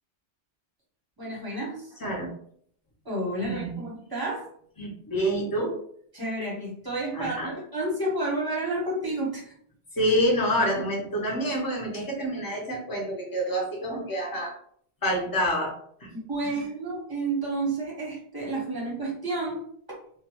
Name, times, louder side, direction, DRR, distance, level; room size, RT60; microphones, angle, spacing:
voice 1, 1.2-1.9 3.0-4.5 6.1-9.5 16.1-19.6, right 2 dB, 20° right, -4 dB, 1.0 m, -30 dB
voice 2, 3.4-3.7 4.8-5.8 7.1-7.5 9.9-14.6 15.0-15.7 16.0-16.1 16.4-16.6, equal, 20° left, -3 dB, 0.8 m, -27 dB
2.5 x 2.3 x 3.0 m, 0.62 s
omnidirectional pair, 1.1 m